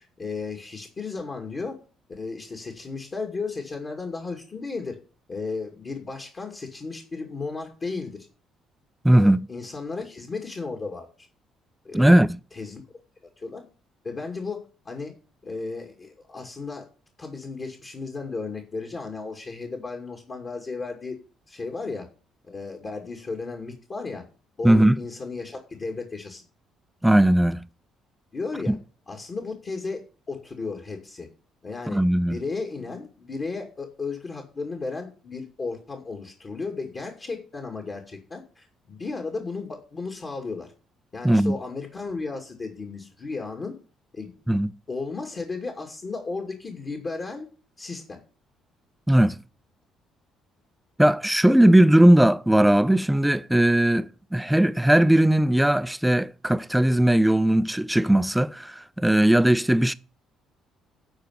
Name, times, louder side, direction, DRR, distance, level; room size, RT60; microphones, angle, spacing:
voice 1, 0.0-1.8 2.1-5.0 5.3-8.2 9.1-11.3 11.8-12.1 12.5-12.8 13.4-13.6 14.0-15.1 15.4-16.9 17.2-21.2 21.5-22.1 22.4-24.2 24.6-26.4 28.3-28.8 29.1-31.3 31.6-40.7 41.1-43.7 44.1-44.3 44.9-47.5 47.8-48.2, left 4 dB, 40° left, 2.4 m, -34 dB
voice 2, 9.0-9.4 11.9-12.4 24.6-25.0 27.0-27.6 28.7-28.8 31.9-32.4 41.2-41.6 44.5-44.7 49.1-49.4 51.0-59.9, right 1 dB, 5° right, 0.6 m, -18 dB
11.5 x 4.7 x 8.0 m
hypercardioid pair, 50°, 0 cm